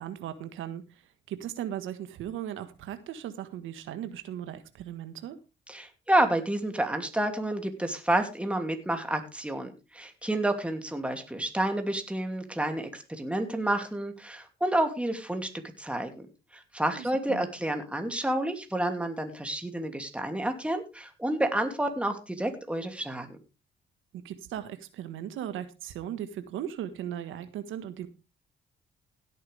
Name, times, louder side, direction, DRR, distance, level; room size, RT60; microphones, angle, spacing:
voice 1, 0.0-5.4 16.9-17.5 24.1-28.1, right 10 dB, 85° right, 10 dB, 1.5 m, -38 dB
voice 2, 5.7-15.5 15.8-16.3 16.5-23.4, right 1 dB, 5° right, 5 dB, 2.6 m, -29 dB
16.5 x 9.3 x 3.4 m, 0.28 s
cardioid pair, 90°, 20 cm